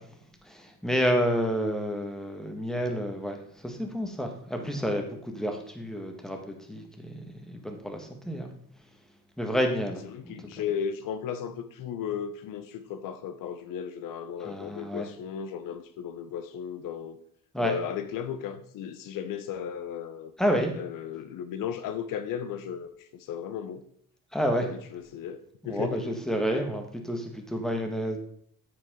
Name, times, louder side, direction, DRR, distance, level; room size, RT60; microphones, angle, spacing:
voice 1, 0.4-8.5 9.4-10.4 14.4-15.1 17.5-17.8 20.4-20.7 24.3-24.7 25.6-28.2, equal, ahead, 3 dB, 1.7 m, -30 dB
voice 2, 10.0-17.2 17.6-20.3 20.7-23.8 24.6-25.4 25.6-26.1, left 8 dB, 70° left, 11 dB, 0.9 m, -35 dB
9.1 x 8.2 x 3.8 m, 0.63 s
cardioid pair, 120°, 35 cm